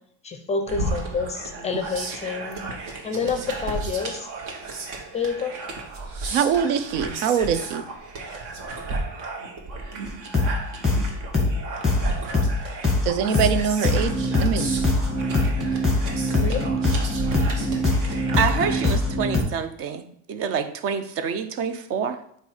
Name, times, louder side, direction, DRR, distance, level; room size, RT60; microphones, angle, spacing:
voice 1, 0.2-2.6 3.0-4.3 5.1-5.5 16.4-16.6, left 5 dB, 20° left, 6 dB, 0.6 m, -28 dB
sound 1, 0.7-18.9, right 3 dB, 55° right, 1.4 m, -33 dB
voice 2, 6.3-7.8 13.0-14.7, right 7 dB, 80° right, 11 dB, 0.7 m, -23 dB
sound 2, 10.3-10.6 10.8-11.1 11.3-11.6 11.8-12.1 12.3-12.6 12.8-13.1 13.3-13.6 13.8-19.4, left 2 dB, ahead, 1.8 m, -22 dB
voice 3, 18.4-20.0 20.3-22.2, right 6 dB, 40° right, 10 dB, 0.6 m, -27 dB
8.1 x 2.7 x 4.9 m, 0.68 s
cardioid pair, 150°, 38 cm